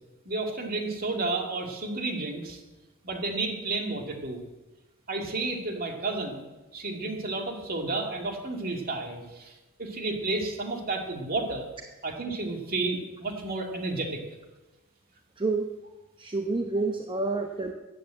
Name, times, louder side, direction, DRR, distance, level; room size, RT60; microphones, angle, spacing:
voice 1, 0.3-2.6 3.0-4.4 5.1-6.4 6.7-9.5 9.8-11.7 12.0-14.2, right 2 dB, 45° right, 3 dB, 2.3 m, -31 dB
voice 2, 15.4-15.7 16.2-17.7, right 3 dB, 25° right, 4 dB, 0.8 m, -28 dB
14.5 x 9.7 x 7.7 m, 1.1 s
head